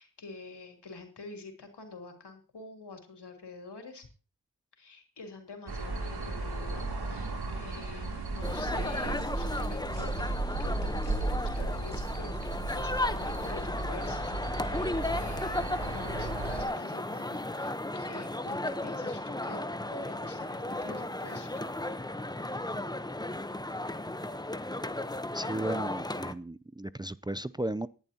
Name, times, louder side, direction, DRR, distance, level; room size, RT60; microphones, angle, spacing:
voice 1, 0.0-4.1 4.8-10.2 10.6-19.6 19.9-21.7, left 3 dB, 85° left, 3.4 m, -47 dB
sound 1, 5.7-16.6, right 2 dB, 70° right, 2.7 m, -35 dB
sound 2, 8.4-26.3, left 1 dB, 10° left, 0.9 m, -35 dB
voice 2, 25.3-27.9, right 1 dB, 10° right, 0.5 m, -35 dB
19.5 x 11.0 x 2.9 m
cardioid pair, 40°, 40 cm